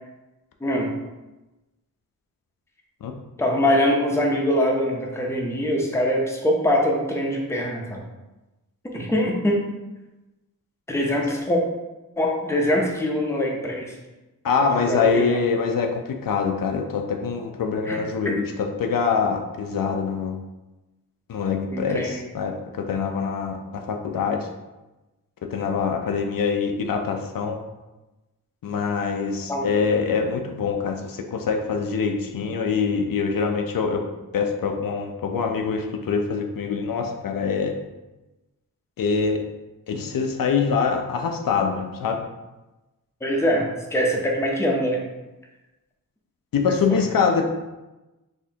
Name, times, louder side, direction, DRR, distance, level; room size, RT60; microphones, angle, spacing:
voice 1, 0.6-0.9 3.4-8.0 8.8-9.6 10.9-11.6 12.2-13.9 14.7-15.4 17.9-18.0 21.7-22.2 29.5-29.7 43.2-45.0 46.9-47.0, equal, 10° left, 0 dB, 0.5 m, -23 dB
voice 2, 14.4-20.4 21.3-24.5 25.5-27.6 28.6-34.0 34.3-37.7 39.0-39.4 39.9-42.2 46.5-47.5, left 5 dB, 70° left, 3 dB, 0.5 m, -24 dB
4.2 x 2.6 x 2.8 m, 1.1 s
wide cardioid pair, 110°, 35 cm